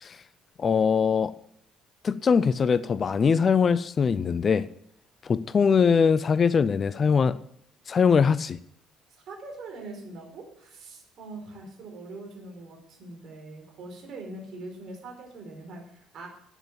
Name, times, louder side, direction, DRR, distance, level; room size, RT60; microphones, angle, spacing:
voice 1, 0.6-1.3 2.0-4.7 5.2-7.4 7.9-8.6, left 6 dB, 35° left, 17 dB, 0.6 m, -22 dB
voice 2, 9.3-16.3, right 2 dB, 50° right, 2 dB, 4.8 m, -42 dB
12.0 x 9.1 x 7.6 m, 0.70 s
figure-of-eight pair, 50°, 0 cm